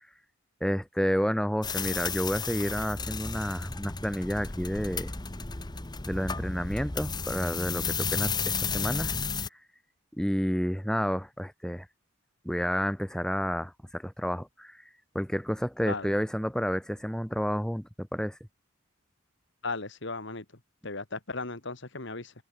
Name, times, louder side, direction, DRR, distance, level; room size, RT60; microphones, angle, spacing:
voice 1, 0.6-5.1 6.1-9.1 10.1-11.9 12.4-14.8 15.1-18.4, equal, 5° left, 2.0 m, -30 dB
sound 1, 1.6-9.5, left 5 dB, 20° left, 1.0 m, -33 dB
voice 2, 19.6-20.4 20.8-22.3, left 3 dB, 55° left, 2.2 m, -36 dB
head